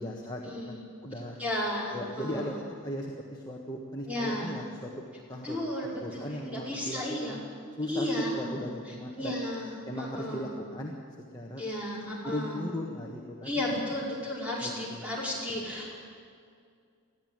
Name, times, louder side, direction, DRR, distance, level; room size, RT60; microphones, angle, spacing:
voice 1, 0.0-1.4 1.9-4.9 5.3-7.4 7.8-9.4 9.8-10.9 11.3-11.6 12.2-13.5 14.6-15.0, left 1 dB, 20° left, -2 dB, 1.5 m, -37 dB
voice 2, 1.4-2.6 4.0-4.6 5.4-7.4 7.9-9.7 10.0-10.5 11.6-12.6 13.4-15.9, left 1 dB, 5° right, -5 dB, 5.0 m, -34 dB
20.5 x 14.0 x 9.0 m, 2.2 s
head